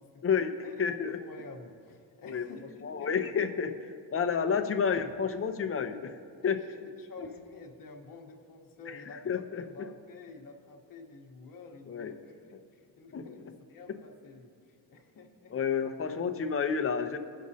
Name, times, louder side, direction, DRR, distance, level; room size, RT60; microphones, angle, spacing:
voice 1, 0.0-3.2 4.5-4.6 6.4-6.6 7.0-15.6, left 3 dB, 55° left, 0 dB, 1.2 m, -50 dB
voice 2, 0.8-1.2 2.3-2.4 2.8-6.2 6.4-6.6 7.2-7.3 8.9-9.6 11.9-12.1 13.1-13.3 15.5-17.2, left 6 dB, 35° left, 7 dB, 0.7 m, -30 dB
18.0 x 6.3 x 2.8 m, 2.3 s
cardioid pair, 95°, 39 cm